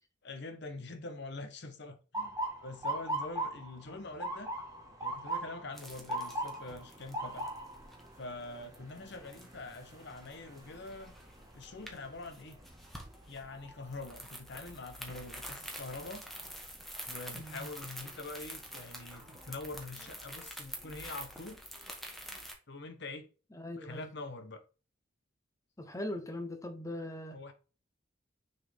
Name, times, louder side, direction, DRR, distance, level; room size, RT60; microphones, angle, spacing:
voice 1, 0.2-2.4 2.6-4.5 5.0-7.5 8.2-11.1 11.5-12.6 13.3-16.2 17.1-21.6 22.7-23.3 23.8-24.6 27.3-27.5, left 2 dB, 65° left, 1.0 m, -44 dB
Motor vehicle (road) / Siren, 2.1-14.0 14.5-14.9 15.7-16.0 17.9-18.1 18.6-18.7 19.2-19.8, right 1 dB, 20° right, 1.6 m, -41 dB
sound 1, 5.7-22.5, equal, ahead, 1.3 m, -48 dB
voice 2, 17.3-17.7 23.5-24.1 25.8-27.4, left 1 dB, 15° left, 0.8 m, -41 dB
6.4 x 4.3 x 3.6 m
head